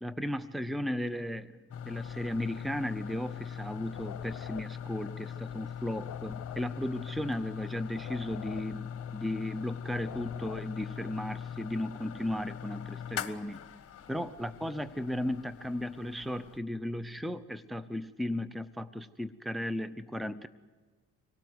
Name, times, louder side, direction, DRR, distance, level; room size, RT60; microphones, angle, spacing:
voice 1, 0.0-13.6 14.1-20.5, left 1 dB, ahead, 13 dB, 0.8 m, -35 dB
sound 1, 1.7-16.6, left 8 dB, 50° left, 1.4 m, -41 dB
sound 2, 3.9-5.6 5.9-9.6 9.9-11.2, left 13 dB, 70° left, 0.8 m, -48 dB
26.0 x 18.0 x 8.1 m, 1.4 s
cardioid pair, 90°, 30 cm